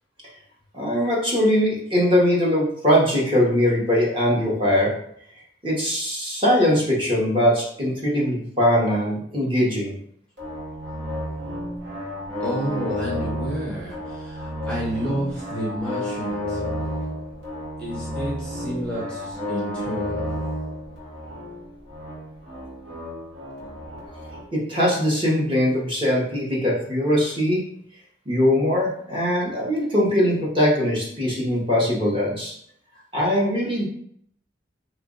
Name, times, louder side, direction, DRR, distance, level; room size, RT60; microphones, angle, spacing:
voice 1, 0.7-4.9 5.6-9.9 24.5-27.6 28.3-32.5 33.1-33.8, equal, 30° right, -4 dB, 1.0 m, -21 dB
sound 1, 10.4-24.4, left 1 dB, 75° right, 1.2 m, -31 dB
voice 2, 12.4-16.6 17.8-20.3, right 1 dB, 5° left, -5 dB, 0.6 m, -30 dB
3.0 x 2.4 x 3.7 m, 0.66 s
head